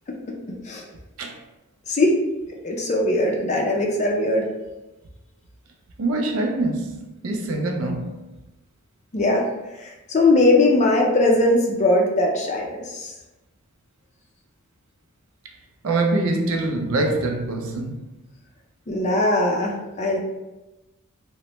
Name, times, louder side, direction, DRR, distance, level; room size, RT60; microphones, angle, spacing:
voice 1, 1.9-2.2 2.6-4.5 9.1-9.5 9.8-13.1 18.9-20.2, left 2 dB, 30° left, 0.4 m, -20 dB
voice 2, 6.0-8.3 15.8-18.1, right 2 dB, 65° right, 0.4 m, -24 dB
3.0 x 2.1 x 2.8 m
head